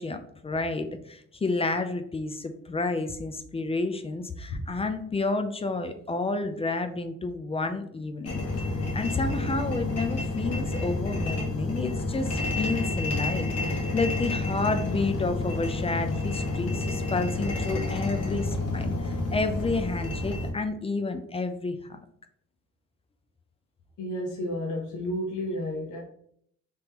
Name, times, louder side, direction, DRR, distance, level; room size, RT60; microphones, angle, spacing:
voice 1, 0.0-22.0, left 3 dB, 20° left, 8 dB, 0.4 m, -30 dB
sound 1, 8.2-20.5, left 2 dB, 50° left, 1.2 m, -29 dB
voice 2, 24.0-26.0, left 1 dB, 85° left, -1 dB, 0.8 m, -31 dB
3.6 x 3.0 x 2.9 m, 0.66 s
cardioid pair, 90°, 30 cm